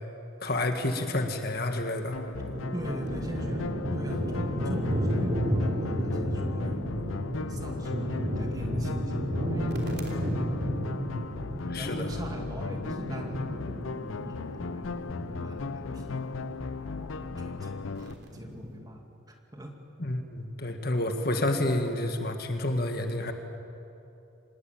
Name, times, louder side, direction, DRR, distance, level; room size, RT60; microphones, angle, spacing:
voice 1, 0.4-2.2 11.7-12.1 20.0-23.3, left 1 dB, 50° left, 6 dB, 1.7 m, -29 dB
sound 1, 2.1-18.1, left 4 dB, 80° left, 0.5 m, -37 dB
sound 2, 2.2-18.8, equal, 50° right, 3.4 m, -33 dB
voice 2, 2.7-3.7 3.9-6.8 7.5-10.3 11.7-14.8 15.2-16.3 16.8-19.8, equal, 20° right, 2 dB, 2.3 m, -42 dB
25.5 x 20.0 x 9.1 m, 2.8 s
head